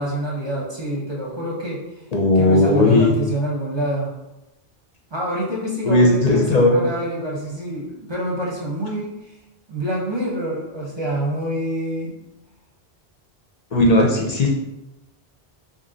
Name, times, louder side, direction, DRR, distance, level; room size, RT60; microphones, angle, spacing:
voice 1, 0.0-1.8 2.3-4.1 5.1-9.1 9.7-12.2, right 1 dB, 30° right, -4 dB, 0.7 m, -26 dB
voice 2, 2.1-3.1 5.9-6.8 13.7-14.5, left 2 dB, 50° left, 0 dB, 0.6 m, -16 dB
3.0 x 2.6 x 3.8 m, 0.96 s
omnidirectional pair, 1.1 m